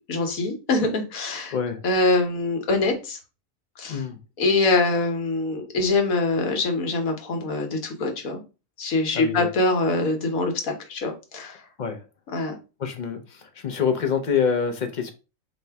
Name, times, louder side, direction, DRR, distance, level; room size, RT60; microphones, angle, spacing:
voice 1, 0.1-1.5 1.8-3.2 3.8-4.0 4.4-8.4 8.8-11.6 12.3-12.5, left 3 dB, 85° left, 1.4 m, -24 dB
voice 2, 9.1-9.5 11.8-12.0 12.8-15.1, left 6 dB, 50° left, 0.6 m, -26 dB
4.3 x 2.7 x 3.3 m
omnidirectional pair, 1.4 m